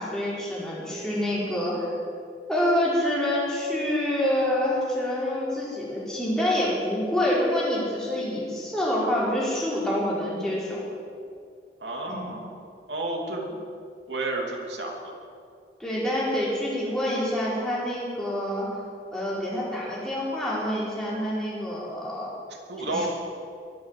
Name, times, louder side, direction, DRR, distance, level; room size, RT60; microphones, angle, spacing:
voice 1, 0.0-1.9 2.5-10.8 12.1-12.4 15.8-18.7 19.1-22.3 22.8-23.1, left 1 dB, 5° left, -7 dB, 4.6 m, -27 dB
voice 2, 11.8-12.6 12.9-13.5 14.1-15.2 22.7-23.1, right 2 dB, 85° right, 0 dB, 2.9 m, -31 dB
23.0 x 8.0 x 7.7 m, 2.3 s
head